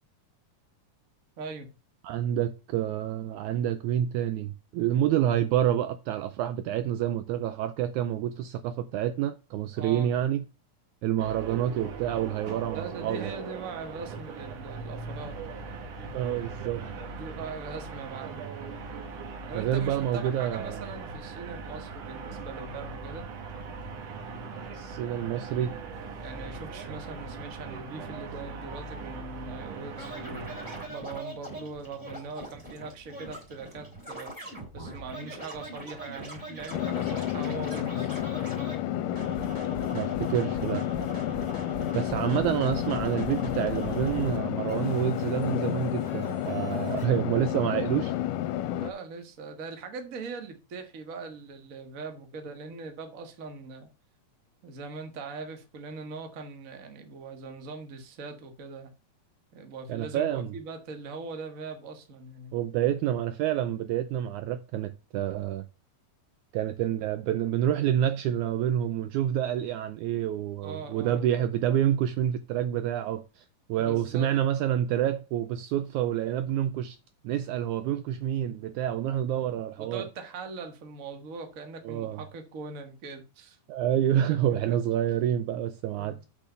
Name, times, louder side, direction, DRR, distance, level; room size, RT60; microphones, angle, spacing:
voice 1, 1.4-1.7 9.8-10.1 12.7-15.4 17.1-18.5 19.5-23.3 26.2-30.5 30.9-38.1 48.8-53.9 54.6-58.9 59.5-62.5 70.6-71.2 73.7-74.3 79.1-79.2 79.8-83.6 84.5-84.8 85.9-86.2, right 4 dB, 50° right, 1.0 m, -41 dB
voice 2, 2.0-10.4 11.0-13.3 16.1-16.8 19.5-20.8 24.7-25.7 39.9-40.8 41.9-48.1 59.9-60.5 62.5-65.6 66.5-73.4 73.7-77.0 77.2-80.1 81.8-82.2 83.7-86.3, right 11 dB, 90° right, 1.7 m, -28 dB
sound 1, 11.2-30.9, right 4 dB, 65° right, 2.8 m, -40 dB
Scratching (performance technique), 30.0-38.8 39.1-44.4 44.7-47.0, right 1 dB, 15° right, 3.2 m, -41 dB
sound 2, 36.7-48.9, left 12 dB, 80° left, 2.2 m, -31 dB
6.1 x 6.1 x 6.8 m
omnidirectional pair, 4.0 m